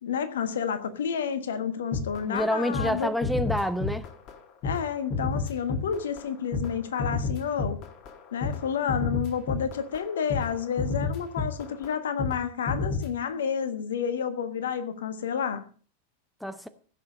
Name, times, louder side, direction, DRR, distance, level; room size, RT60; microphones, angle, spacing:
voice 1, 0.0-3.1 4.6-7.8 8.3-15.6, left 7 dB, 65° left, 1.4 m, -30 dB
sound 1, 1.9-2.5 2.7-3.0 3.2-4.4 4.6-12.4 12.7-13.1, left 3 dB, 40° left, 1.7 m, -31 dB
voice 2, 2.2-4.1 16.4-16.7, equal, ahead, 0.8 m, -28 dB
16.0 x 6.8 x 6.4 m
figure-of-eight pair, 90°, 0 cm